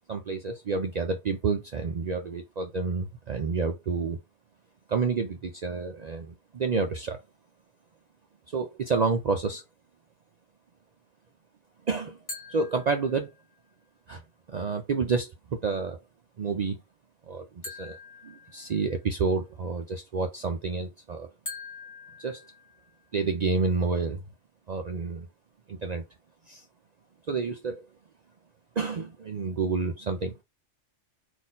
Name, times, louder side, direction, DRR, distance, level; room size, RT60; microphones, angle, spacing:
voice 1, 0.1-4.2 4.9-7.2 8.5-9.6 11.9-12.2 12.5-13.3 14.1-14.2 14.5-16.0 16.4-16.8 17.3-18.0 18.2-21.3 22.2-22.4 23.1-24.2 24.7-25.3 25.7-26.0 26.5-26.6 27.3-27.8 28.8-30.3, right 4 dB, 60° right, 0.4 m, -29 dB
sound 1, 12.3-13.6 17.6-19.2 21.5-23.2, left 2 dB, 25° left, 1.4 m, -44 dB
4.1 x 2.6 x 3.8 m
omnidirectional pair, 1.3 m